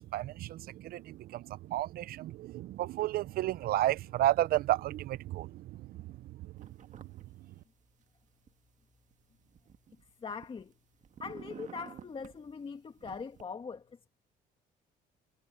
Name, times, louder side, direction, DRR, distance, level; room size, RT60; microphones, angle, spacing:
voice 1, 0.1-1.4 1.7-5.5, right 14 dB, 65° right, 0.4 m, -31 dB
sound 1, 6.6-7.2 7.5-8.5 9.1-10.7 11.0-12.4 13.0-13.4, right 8 dB, 45° right, 1.6 m, -50 dB
voice 2, 10.2-10.7 11.2-14.1, left 5 dB, 30° left, 2.1 m, -42 dB
cardioid pair, 110°, 17 cm